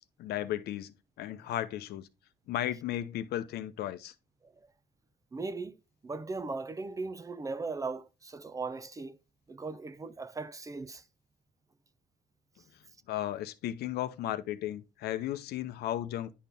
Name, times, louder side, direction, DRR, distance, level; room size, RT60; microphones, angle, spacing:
voice 1, 0.2-2.1 2.5-4.1 13.1-16.3, left 12 dB, 70° left, 0.7 m, -35 dB
voice 2, 5.3-9.2 9.5-11.0, right 3 dB, 20° right, 0.6 m, -38 dB
10.5 x 4.2 x 3.4 m
cardioid pair, 110°, 17 cm